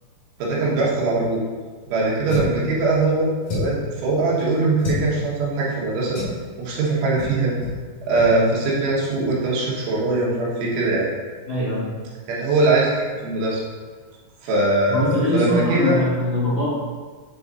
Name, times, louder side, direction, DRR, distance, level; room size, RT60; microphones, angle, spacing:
voice 1, 0.4-1.4 1.9-6.2 6.6-7.5 8.1-11.1 12.3-13.6 14.4-16.0, right 2 dB, 85° right, -5 dB, 3.8 m, -21 dB
sound 1, 2.3-2.6 3.4-3.9 4.8-5.1 6.1-6.4 7.2-7.3 7.6-7.8 8.1-8.3, left 2 dB, 65° left, 1.6 m, -28 dB
voice 2, 11.5-11.9 14.9-16.6, left 1 dB, 85° left, -11 dB, 0.9 m, -22 dB
8.6 x 3.6 x 4.0 m, 1.5 s
omnidirectional pair, 5.3 m